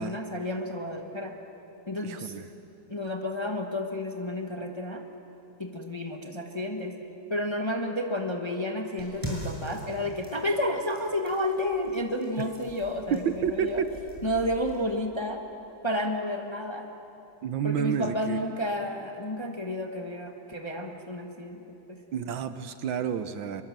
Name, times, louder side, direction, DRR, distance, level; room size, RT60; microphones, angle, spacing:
voice 1, 0.0-1.3 1.9-2.3 2.9-5.0 5.6-6.9 7.3-13.8 14.2-15.4 15.8-16.9 17.6-21.6 21.9-22.0, left 1 dB, 15° left, 3 dB, 1.1 m, -31 dB
voice 2, 2.0-2.5 13.1-13.9 17.4-18.4 22.1-23.6, right 8 dB, 70° right, 10 dB, 1.5 m, -30 dB
sound 1, 9.0-14.8, right 1 dB, 10° right, 6.9 m, -42 dB
24.5 x 23.0 x 7.5 m, 2.8 s
omnidirectional pair, 2.3 m